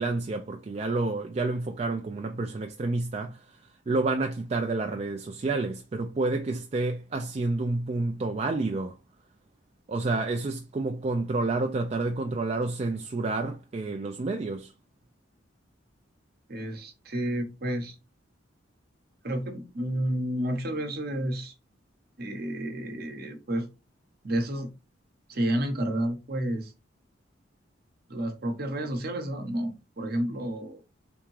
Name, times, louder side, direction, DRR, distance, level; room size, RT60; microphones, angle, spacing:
voice 1, 0.0-3.4 3.9-9.0 9.9-14.7, right 3 dB, 35° right, 0.4 m, -29 dB
voice 2, 16.5-18.0 19.2-21.5 22.2-23.7 24.2-24.7 25.3-26.7 28.1-30.8, right 1 dB, 50° right, 0.9 m, -30 dB
3.5 x 3.5 x 3.1 m
head